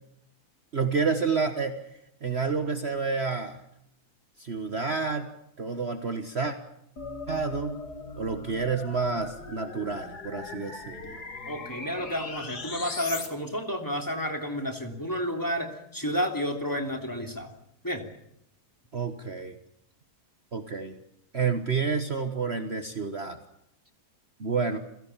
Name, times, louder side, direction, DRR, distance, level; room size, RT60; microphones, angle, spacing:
voice 1, 0.7-1.8 2.2-3.6 4.4-5.3 5.6-6.6 7.3-7.8 8.2-11.2 18.9-19.5 20.5-21.0 21.3-23.4 24.4-24.8, right 5 dB, 40° right, 7 dB, 1.6 m, -29 dB
sound 1, 7.0-13.3, left 3 dB, 75° left, 3.2 m, -39 dB
voice 2, 11.5-17.5 17.8-18.0, equal, 10° left, 4 dB, 3.1 m, -31 dB
28.5 x 17.0 x 7.3 m, 0.78 s
omnidirectional pair, 1.7 m